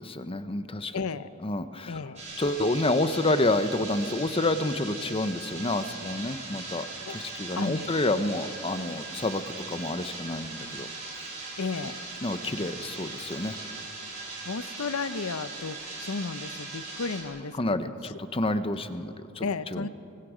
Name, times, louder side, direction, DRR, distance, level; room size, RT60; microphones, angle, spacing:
voice 1, 0.0-1.0 1.4-2.0 2.4-6.9 7.1-10.9 12.2-13.6 17.6-19.5 19.7-19.9, left 2 dB, 25° left, 11 dB, 0.8 m, -29 dB
voice 2, 0.9-1.3 1.8-2.2 7.1-7.2 7.6-8.0 11.6-12.0 14.4-18.1 19.4-19.9, left 4 dB, 75° left, 14 dB, 0.7 m, -33 dB
sound 1, 2.2-17.2, right 3 dB, 30° right, 4.7 m, -40 dB
sound 2, 6.1-17.4, right 3 dB, 80° right, 4.0 m, -52 dB
24.0 x 23.5 x 5.0 m, 2.9 s
head